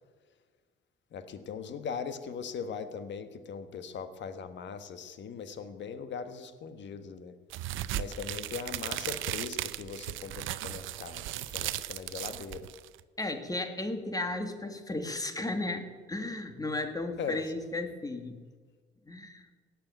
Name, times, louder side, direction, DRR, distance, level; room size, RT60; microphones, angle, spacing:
voice 1, 1.1-7.3 7.9-12.7 17.2-17.4, left 6 dB, 65° left, 10 dB, 1.5 m, -40 dB
sound 1, 7.5-13.0, right 14 dB, 85° right, 0.6 m, -36 dB
voice 2, 13.2-18.4 19.1-19.5, left 2 dB, 20° left, 7 dB, 1.9 m, -34 dB
17.5 x 6.8 x 9.1 m, 1.5 s
cardioid pair, 90°, 20 cm